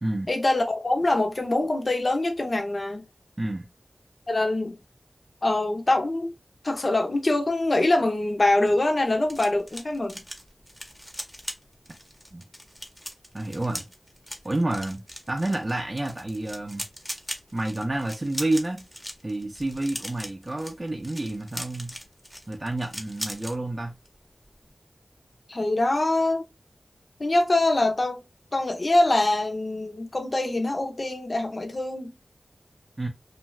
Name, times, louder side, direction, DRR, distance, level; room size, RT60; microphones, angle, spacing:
voice 1, 0.3-3.0 4.3-4.8 5.4-6.3 6.6-10.2 25.5-26.4 27.2-28.2 28.5-32.1, left 2 dB, 50° left, 0.6 m, -24 dB
rubix cube, 8.4-23.6 23.9-24.2 24.4-24.7, equal, ahead, 0.7 m, -40 dB
voice 2, 13.3-13.9 14.4-15.0 15.3-16.8 17.5-18.8 19.2-21.9 22.5-23.9 33.0-33.1, right 2 dB, 35° right, 0.5 m, -29 dB
2.5 x 2.3 x 3.1 m
wide cardioid pair, 75°, 0 cm